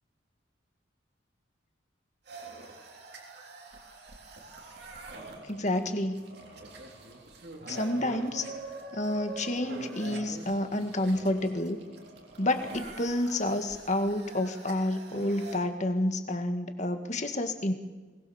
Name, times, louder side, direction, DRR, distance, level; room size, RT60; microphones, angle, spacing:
sound 1, 2.3-15.6, right 2 dB, 55° right, 3.6 m, -45 dB
voice 1, 5.5-6.2 7.7-8.5 8.9-11.8 12.4-17.7, left 1 dB, 35° left, 7 dB, 1.9 m, -29 dB
22.5 x 20.0 x 7.2 m, 1.3 s
head